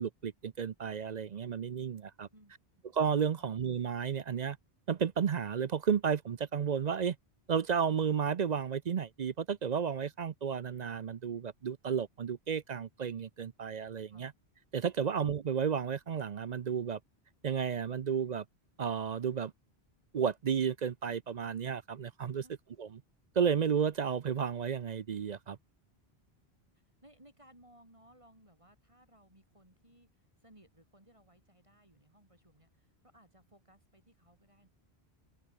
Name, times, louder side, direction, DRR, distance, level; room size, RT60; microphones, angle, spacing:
voice 1, 0.0-2.3 2.9-4.6 4.9-7.2 7.5-14.3 14.7-17.0 17.4-18.4 18.8-19.5 20.1-22.4 22.8-22.9 23.4-25.6, right 7 dB, 50° right, 0.6 m, -32 dB
voice 2, 26.7-34.7, right 1 dB, 30° right, 4.9 m, -62 dB
open air
omnidirectional pair, 1.1 m